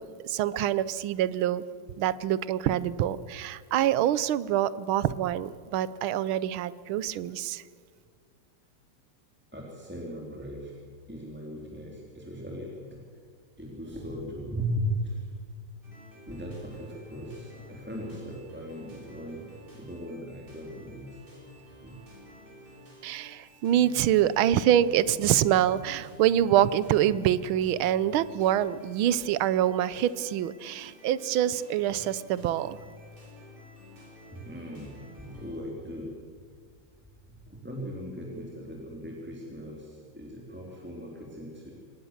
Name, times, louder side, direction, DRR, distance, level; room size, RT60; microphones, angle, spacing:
voice 1, 0.0-1.6 2.0-7.6 23.0-32.8, right 11 dB, 75° right, 17 dB, 1.6 m, -25 dB
voice 2, 9.5-10.7 11.1-12.7 13.6-15.3 16.3-19.4 19.7-21.2 21.8-22.0 31.9-32.0 34.4-35.0 35.3-36.1 37.5-41.7, equal, 5° right, -2 dB, 3.2 m, -37 dB
sound 1, 15.8-35.6, equal, 25° right, 6.4 m, -50 dB
25.5 x 19.5 x 7.3 m, 2.1 s
omnidirectional pair, 2.3 m